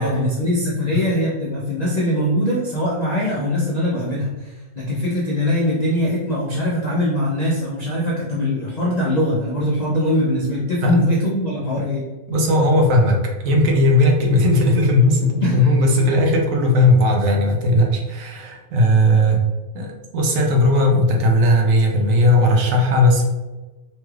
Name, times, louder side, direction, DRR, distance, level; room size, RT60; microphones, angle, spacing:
voice 1, 0.0-12.0 15.4-15.7, equal, 75° left, -5 dB, 0.3 m, -22 dB
voice 2, 12.3-19.4 19.7-23.2, left 1 dB, 70° right, 1 dB, 0.9 m, -17 dB
3.0 x 2.3 x 3.1 m, 1.2 s
omnidirectional pair, 1.5 m